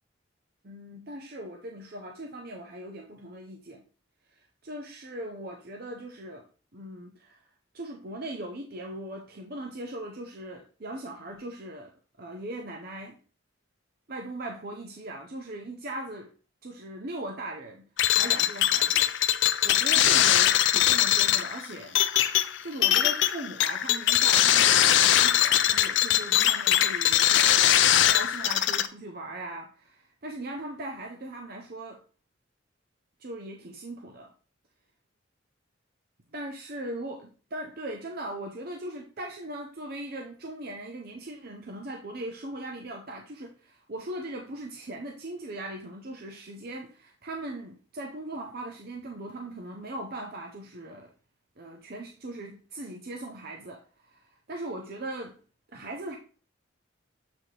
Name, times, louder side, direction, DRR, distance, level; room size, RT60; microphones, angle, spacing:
voice 1, 0.6-3.8 4.3-6.4 6.7-7.4 7.7-11.9 12.2-13.2 14.1-16.3 16.6-17.9 18.2-19.1 19.4-32.0 33.2-34.3 36.3-51.1 51.6-55.3 55.7-56.2, right 1 dB, 50° right, 2 dB, 0.7 m, -39 dB
sound 1, 18.0-28.9, left 11 dB, 65° left, 0.4 m, -22 dB
7.5 x 4.1 x 3.3 m, 0.38 s
head